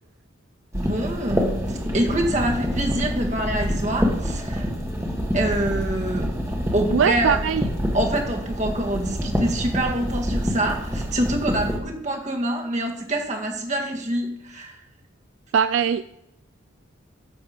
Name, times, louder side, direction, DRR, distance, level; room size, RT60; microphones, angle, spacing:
sound 1, 0.7-11.8, equal, 15° right, 1.6 m, -27 dB
voice 1, 0.7-4.7 5.3-6.3 6.7-7.4 7.9-14.8, right 1 dB, 35° right, 1 dB, 1.9 m, -26 dB
voice 2, 6.9-7.6 15.5-16.0, right 7 dB, 70° right, 12 dB, 0.4 m, -20 dB
10.5 x 7.6 x 5.2 m, 0.85 s
head